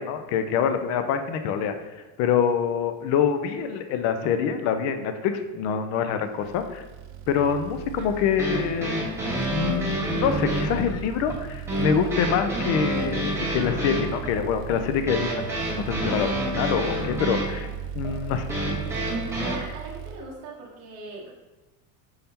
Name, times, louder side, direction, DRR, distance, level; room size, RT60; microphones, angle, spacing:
voice 1, 0.0-1.7 2.2-6.8 7.3-9.1 9.5-15.4 15.7-17.7 17.9-18.5, left 7 dB, 40° left, 8 dB, 0.4 m, -25 dB
sound 1, 6.4-20.2, right 9 dB, 75° right, 0.5 m, -37 dB
sound 2, 8.0-19.5, right 1 dB, 5° right, 1.1 m, -29 dB
voice 2, 19.4-21.3, right 3 dB, 35° right, -5 dB, 0.9 m, -39 dB
5.5 x 3.4 x 2.8 m, 1.1 s
cardioid pair, 155°, 41 cm